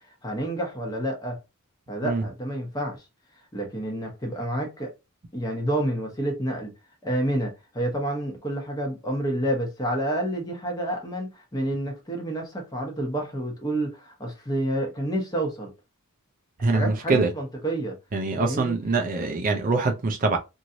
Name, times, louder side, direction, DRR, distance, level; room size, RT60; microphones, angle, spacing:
voice 1, 0.2-1.4 1.9-3.0 3.5-4.9 5.3-6.7 7.0-15.7 16.6-18.0 18.4-18.7, right 1 dB, 15° left, 0.9 m, -29 dB
voice 2, 16.6-17.3 18.1-20.4, right 3 dB, 40° right, 0.5 m, -24 dB
3.0 x 2.6 x 2.7 m
head